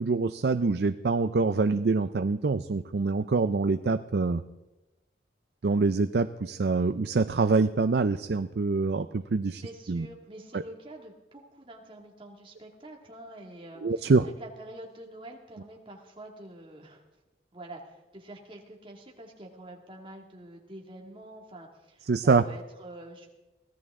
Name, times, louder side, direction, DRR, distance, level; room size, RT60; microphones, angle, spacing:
voice 1, 0.0-4.4 5.6-9.6 9.9-10.0 13.8-14.3 22.1-22.4, right 4 dB, 65° right, 11 dB, 0.5 m, -25 dB
voice 2, 9.5-17.0 17.5-23.3, right 1 dB, 30° right, 0 dB, 2.3 m, -46 dB
23.5 x 16.0 x 3.7 m, 1.0 s
head